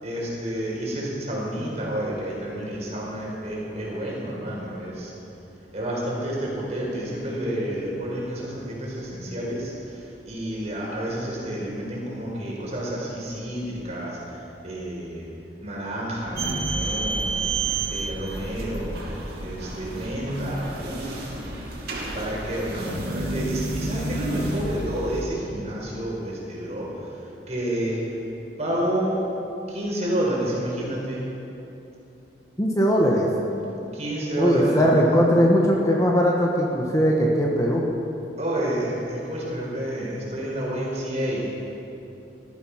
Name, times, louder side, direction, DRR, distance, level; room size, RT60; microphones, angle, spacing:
voice 1, 0.0-5.1 5.7-9.7 10.3-14.2 14.6-15.3 15.6-17.5 17.9-19.1 19.4-21.3 22.1-26.9 27.5-28.0 28.6-29.2 29.7-31.2 33.9-35.4 38.4-41.5, right 1 dB, 40° right, -4 dB, 4.8 m, -29 dB
vending machine, 16.4-25.2, right 2 dB, 60° right, 2.8 m, -30 dB
voice 2, 32.6-33.3 34.4-37.8, equal, 20° left, -1 dB, 1.4 m, -20 dB
18.0 x 13.5 x 5.8 m, 2.9 s
head